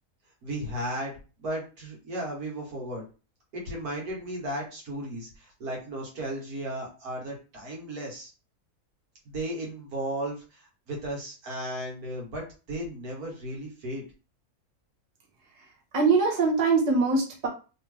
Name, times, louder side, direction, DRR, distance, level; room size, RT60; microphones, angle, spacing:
voice 1, 0.4-1.1 1.4-3.0 3.5-8.3 9.3-10.6 10.9-14.0, right 1 dB, 70° right, -2 dB, 1.8 m, -35 dB
voice 2, 15.9-17.5, right 4 dB, 30° right, -1 dB, 0.9 m, -23 dB
3.2 x 2.9 x 3.1 m, 0.33 s
omnidirectional pair, 1.6 m